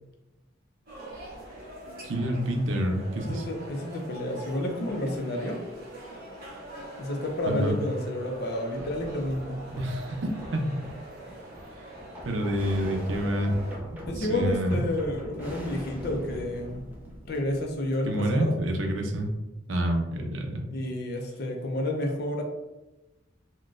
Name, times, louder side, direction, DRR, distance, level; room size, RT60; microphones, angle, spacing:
sound 1, 0.9-13.8, right 1 dB, 50° right, 1.1 m, -43 dB
voice 1, 2.0-3.4 7.4-7.8 9.8-10.8 12.2-13.5 14.2-14.8 18.1-19.3 19.7-20.6, right 1 dB, 75° right, 3 dB, 0.5 m, -28 dB
voice 2, 3.2-5.6 7.0-9.6 14.1-16.9 17.2-18.5 20.7-22.4, left 1 dB, 55° left, 2 dB, 0.5 m, -30 dB
sound 2, 8.8-19.3, equal, 10° right, 0.6 m, -42 dB
3.8 x 2.2 x 2.4 m, 1.0 s
head